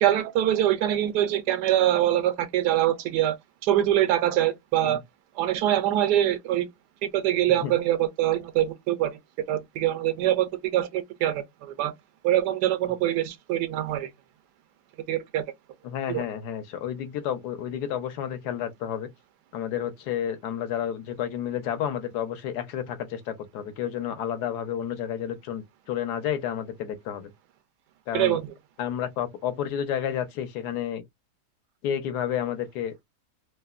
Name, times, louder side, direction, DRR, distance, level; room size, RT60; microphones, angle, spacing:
voice 1, 0.0-3.4 3.6-5.0 5.4-6.7 7.0-9.2 9.5-11.9 12.2-14.1 15.1-15.4 16.1-16.2 28.1-28.4, right 12 dB, 90° right, 1.2 m, -24 dB
voice 2, 15.8-19.1 19.5-27.3 28.1-28.4 28.8-31.0 31.8-32.9, left 9 dB, 80° left, 1.2 m, -31 dB
3.2 x 2.0 x 2.3 m
omnidirectional pair, 1.7 m